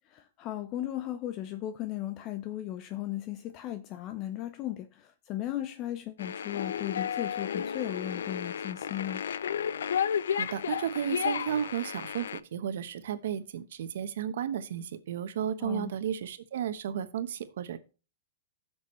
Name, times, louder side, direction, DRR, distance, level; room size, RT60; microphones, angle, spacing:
voice 1, 0.1-9.2 15.6-15.9, left 13 dB, 40° left, 0.7 m, -36 dB
sound 1, 6.2-12.4, left 8 dB, 80° left, 0.4 m, -32 dB
voice 2, 10.3-17.8, right 9 dB, 70° right, 1.0 m, -33 dB
15.5 x 6.2 x 3.1 m
hypercardioid pair, 115°, 0 cm